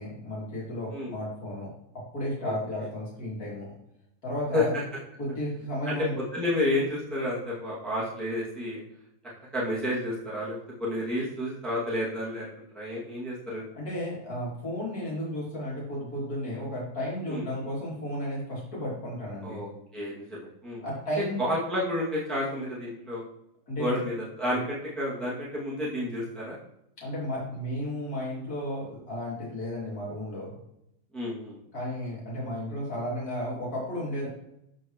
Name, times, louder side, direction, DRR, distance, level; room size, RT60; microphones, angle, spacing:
voice 1, 0.0-1.7 2.1-3.7 4.2-4.7 5.2-6.1 13.7-19.6 20.8-21.4 23.7-24.0 27.0-30.6 31.7-34.3, equal, 75° left, -7 dB, 3.2 m, -33 dB
voice 2, 6.3-8.8 9.5-12.5 12.7-13.6 17.3-17.4 19.4-20.8 21.2-23.2 23.8-26.6 31.1-31.6, left 1 dB, ahead, -8 dB, 2.2 m, -30 dB
13.5 x 4.6 x 3.1 m, 0.81 s
omnidirectional pair, 1.6 m